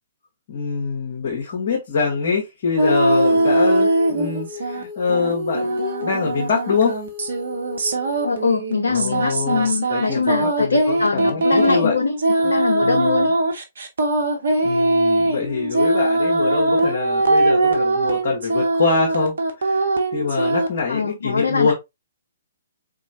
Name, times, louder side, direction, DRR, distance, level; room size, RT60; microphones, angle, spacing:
voice 1, 0.5-5.7 6.0-6.9 8.9-12.0 12.5-13.3 14.6-19.8 20.1-21.7, left 5 dB, 50° left, 1.2 m, -24 dB
Female singing, 2.8-8.5, left 3 dB, 25° right, 2.2 m, -33 dB
sound 1, 2.8-4.8 5.1-20.8, right 2 dB, 60° right, 0.9 m, -21 dB
voice 2, 8.2-13.4 20.9-21.7, left 4 dB, 70° left, 0.5 m, -23 dB
4.2 x 3.0 x 2.7 m
figure-of-eight pair, 125°, 0 cm